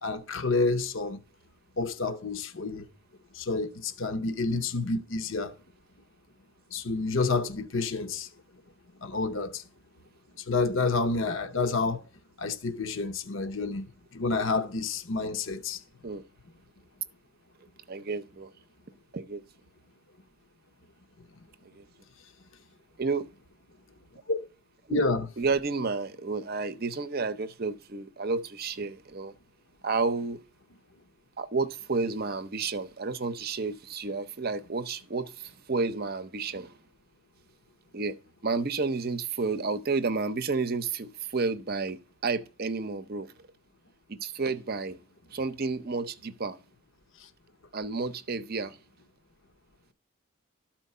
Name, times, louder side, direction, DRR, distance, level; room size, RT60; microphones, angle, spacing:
voice 1, 0.0-1.2 1.8-2.9 3.3-5.5 6.7-8.3 9.0-9.6 10.4-12.0 12.4-13.9 14.1-15.8 24.3-24.4 24.9-25.2 47.2-47.3, left 3 dB, 60° left, 0.8 m, -29 dB
voice 2, 17.9-18.5 19.1-19.4 21.7-21.8 23.0-23.3 24.9-25.1 25.4-29.3 29.8-30.4 31.4-36.8 37.9-38.2 38.4-43.3 44.1-45.0 45.3-46.6 47.7-48.8, right 4 dB, 45° right, 0.6 m, -31 dB
12.5 x 4.4 x 5.5 m
head